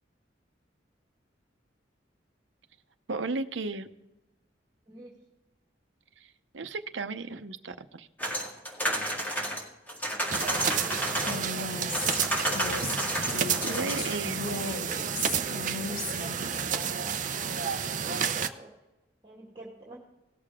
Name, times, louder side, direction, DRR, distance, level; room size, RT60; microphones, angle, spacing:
voice 1, 3.1-3.9 6.2-8.1 13.6-14.4, right 3 dB, 80° right, 10 dB, 0.8 m, -35 dB
sound 1, 8.2-11.7 11.9-14.2, right 1 dB, 10° left, 2.0 m, -31 dB
sound 2, 10.3-18.5, right 7 dB, 40° right, 0.6 m, -31 dB
voice 2, 10.9-12.0 15.2-17.4 18.3-18.7 19.2-20.0, right 1 dB, 25° right, -4 dB, 1.9 m, -50 dB
Female speech woman speaking, 11.2-16.6, left 3 dB, 50° left, 1.9 m, -36 dB
18.5 x 6.7 x 3.6 m, 0.98 s
head